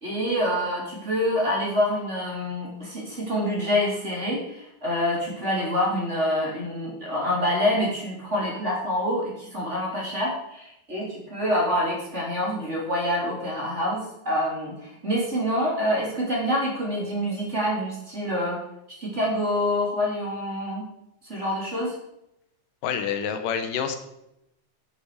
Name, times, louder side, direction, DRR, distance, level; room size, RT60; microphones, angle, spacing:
voice 1, 0.0-18.6 19.0-20.8 21.2-22.0, equal, 20° right, -3 dB, 3.5 m, -26 dB
voice 2, 22.8-24.0, left 7 dB, 80° left, 8 dB, 2.8 m, -27 dB
10.5 x 10.0 x 5.1 m, 0.83 s
omnidirectional pair, 3.9 m